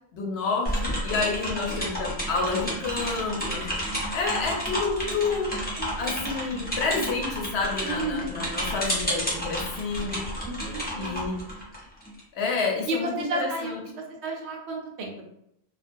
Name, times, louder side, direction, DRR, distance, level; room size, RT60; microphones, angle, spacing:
voice 1, 0.1-3.8 4.1-5.6 6.0-10.2 11.0-11.4 12.3-13.8, left 4 dB, 75° left, 0 dB, 0.9 m, -29 dB
sound 1, 0.6-12.2, equal, 10° left, 0.5 m, -31 dB
voice 2, 5.8-6.7 7.8-8.3 10.4-11.2 12.8-13.9 14.2-15.2, right 2 dB, 85° right, 1 dB, 0.8 m, -33 dB
2.3 x 2.2 x 2.5 m, 0.78 s
omnidirectional pair, 1.1 m